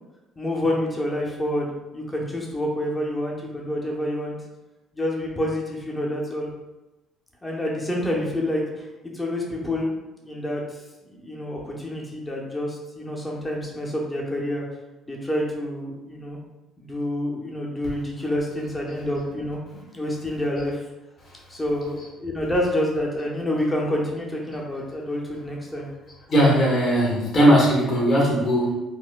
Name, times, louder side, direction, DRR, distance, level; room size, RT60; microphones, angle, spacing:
voice 1, 0.4-4.3 4.9-6.5 7.4-8.9 9.1-9.9 10.2-10.8 11.1-14.6 15.1-16.4 16.8-19.6 19.9-20.8 21.5-25.9, left 1 dB, 15° left, -2 dB, 0.8 m, -28 dB
voice 2, 26.3-28.7, equal, 45° left, -5 dB, 1.4 m, -18 dB
4.2 x 2.2 x 2.2 m, 1.0 s
cardioid pair, 90°, 0 cm